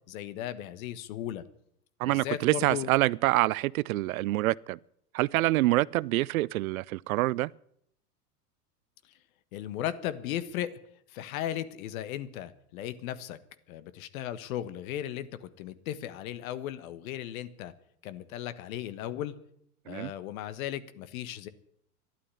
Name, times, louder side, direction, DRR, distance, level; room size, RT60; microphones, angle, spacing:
voice 1, 0.0-1.4 2.0-2.9 9.5-10.7 11.1-13.4 13.7-17.7 18.0-19.3 19.8-21.5, left 11 dB, 60° left, 1.5 m, -36 dB
voice 2, 2.0-4.8 5.1-7.5 19.9-20.1, right 18 dB, 65° right, 0.5 m, -26 dB
13.0 x 11.5 x 9.8 m
hypercardioid pair, 95°, 46 cm